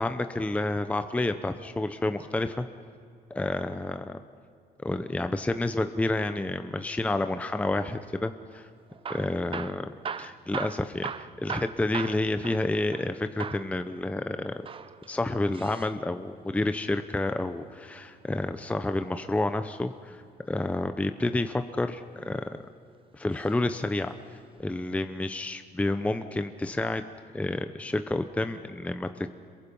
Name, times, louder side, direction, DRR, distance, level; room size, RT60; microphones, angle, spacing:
voice 1, 0.0-2.7 3.3-4.2 4.8-8.7 9.1-14.6 15.1-20.2 20.5-22.4 23.1-24.1 24.6-27.0 27.3-29.4, left 2 dB, 10° left, 9 dB, 0.7 m, -29 dB
Hammer / Drill, 8.9-13.1 13.4-13.7 14.5-16.0 17.7-18.9 20.6-21.1 21.8-22.6 23.3-23.6 23.9-24.0 24.6-24.7, right 6 dB, 30° right, 0.7 m, -39 dB
27.0 x 22.5 x 5.5 m, 2.4 s
cardioid pair, 110°, 17 cm